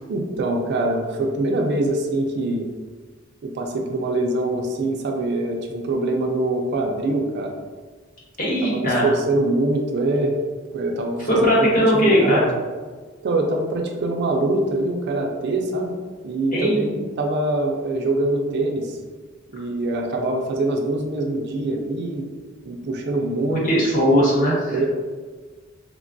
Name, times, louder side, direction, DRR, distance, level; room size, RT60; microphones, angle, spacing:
voice 1, 0.1-2.7 3.4-7.5 8.7-10.3 10.7-12.5 13.2-16.0 16.2-19.0 19.5-22.3 22.6-23.7 24.7-24.9, right 2 dB, 55° right, 2 dB, 0.4 m, -24 dB
voice 2, 8.4-9.1 11.3-12.5 16.5-16.9 23.5-24.8, equal, 40° left, -6 dB, 1.0 m, -19 dB
3.3 x 2.2 x 2.5 m, 1.4 s
head